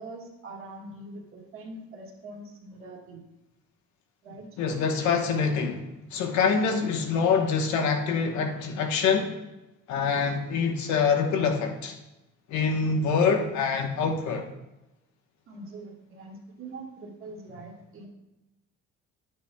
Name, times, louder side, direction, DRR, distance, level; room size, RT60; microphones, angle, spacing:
voice 1, 0.0-3.2 4.2-4.6 15.5-18.1, right 2 dB, 45° right, 1.7 m, -43 dB
voice 2, 4.6-9.3 9.9-12.0 12.5-14.5, left 5 dB, 75° left, 1.1 m, -25 dB
11.0 x 9.0 x 2.2 m
cardioid pair, 175°, 29 cm